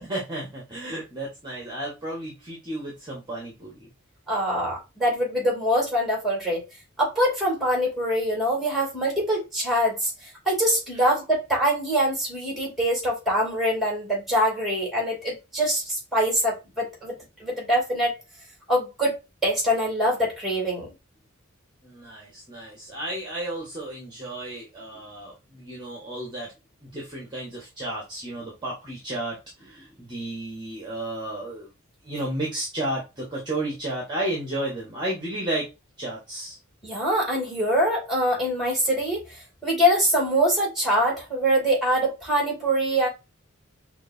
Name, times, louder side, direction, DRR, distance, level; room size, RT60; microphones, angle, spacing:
voice 1, 0.0-3.9 21.8-26.5 26.8-31.7 32.0-35.7 36.0-36.6, right 1 dB, 20° right, 1.3 m, -33 dB
voice 2, 4.3-6.6 7.0-18.1 18.7-19.2 19.4-20.9 36.8-43.1, equal, ahead, 2.5 m, -24 dB
6.2 x 2.8 x 2.6 m
head